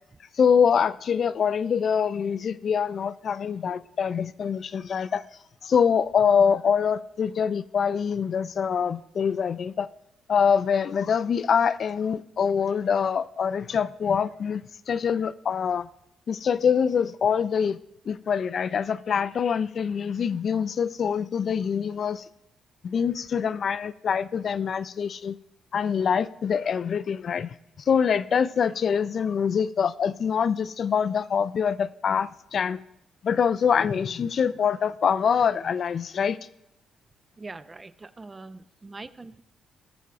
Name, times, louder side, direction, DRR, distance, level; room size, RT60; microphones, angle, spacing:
voice 1, 0.4-5.2 5.6-9.9 10.3-15.9 16.3-17.8 18.1-22.2 22.8-25.4 25.7-27.5 27.9-32.8 33.2-36.4, left 7 dB, 55° left, 0.3 m, -24 dB
voice 2, 37.4-39.4, right 3 dB, 25° right, 0.5 m, -42 dB
19.5 x 6.9 x 2.5 m
cardioid pair, 90°, 0 cm